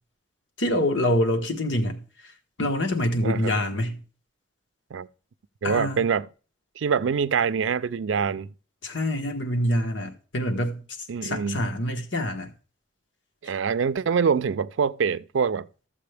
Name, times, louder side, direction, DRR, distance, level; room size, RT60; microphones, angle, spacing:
voice 1, 0.6-2.0 2.6-4.0 5.6-6.0 8.8-12.5, left 1 dB, 80° left, 1.4 m, -26 dB
voice 2, 3.2-3.5 4.9-5.1 5.6-6.3 6.8-8.5 11.1-11.6 13.4-15.7, right 6 dB, 85° right, 0.4 m, -25 dB
13.0 x 7.3 x 3.4 m
head